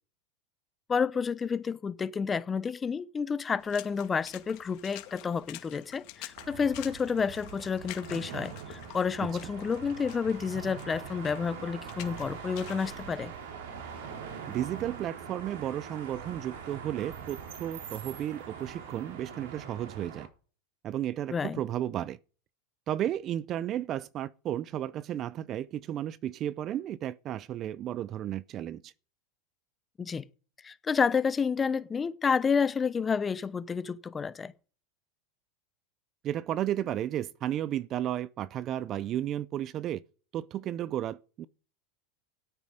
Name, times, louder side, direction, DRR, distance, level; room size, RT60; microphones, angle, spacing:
voice 1, 0.9-13.3 21.3-21.6 30.0-30.2 30.6-34.5, left 6 dB, 15° left, 0.8 m, -30 dB
Water / Splash splatter, 3.6-12.9, left 16 dB, 55° left, 2.2 m, -48 dB
sound 1, 6.4-20.3, right 7 dB, 75° right, 4.2 m, -43 dB
voice 2, 14.5-20.3 20.8-22.2 22.9-28.9 36.2-40.0 40.3-41.5, right 11 dB, 35° right, 0.5 m, -33 dB
14.0 x 8.6 x 5.1 m
supercardioid pair, 140°, 0 cm